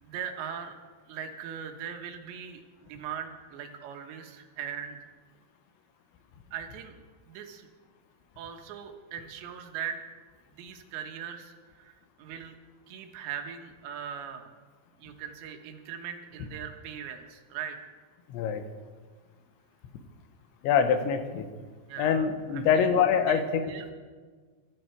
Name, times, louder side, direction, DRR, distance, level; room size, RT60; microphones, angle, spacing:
voice 1, 0.0-0.8 1.1-5.1 6.5-6.9 7.3-7.7 8.4-10.0 10.5-12.6 12.9-14.5 15.0-17.8 21.9-22.3 22.5-22.9 23.3-23.9, right 8 dB, 80° right, 5 dB, 3.6 m, -40 dB
voice 2, 18.3-18.6 20.6-21.5 22.0-23.7, left 7 dB, 90° left, 8 dB, 3.6 m, -24 dB
24.5 x 13.0 x 4.6 m, 1.5 s
omnidirectional pair, 5.1 m